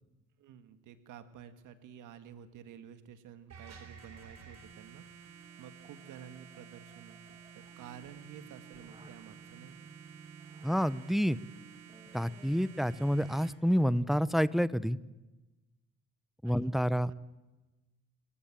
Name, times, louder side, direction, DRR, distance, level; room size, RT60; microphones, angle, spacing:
voice 1, 0.4-9.9 16.4-16.6 17.1-17.2, right 8 dB, 85° right, 10 dB, 1.8 m, -51 dB
sound 1, 3.5-13.5, right 7 dB, 60° right, 4.2 m, -53 dB
sound 2, 5.3-14.3, right 4 dB, 15° right, 2.2 m, -58 dB
voice 2, 10.6-11.4 12.1-15.0 16.4-17.1, equal, ahead, 17 dB, 0.7 m, -28 dB
26.5 x 15.0 x 9.0 m, 1.1 s
cardioid pair, 90°, 30 cm